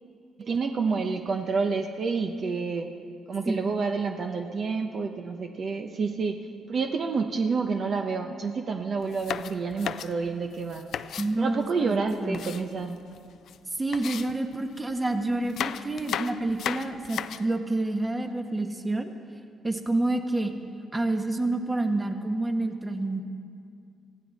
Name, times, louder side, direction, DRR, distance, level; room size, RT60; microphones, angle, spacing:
voice 1, 0.4-2.9 3.3-6.4 6.7-10.9 11.4-13.0, right 4 dB, 50° right, 5 dB, 0.9 m, -29 dB
sound 1, 9.0-11.3 11.9-13.2 13.5-13.6 13.9-14.9 15.4-17.6, left 9 dB, 70° left, 0.4 m, -35 dB
voice 2, 11.2-12.4 13.8-19.1 19.6-20.5 20.9-23.2, right 2 dB, 15° right, 6 dB, 1.2 m, -28 dB
20.5 x 15.0 x 4.2 m, 2.4 s
cardioid pair, 90°, 0 cm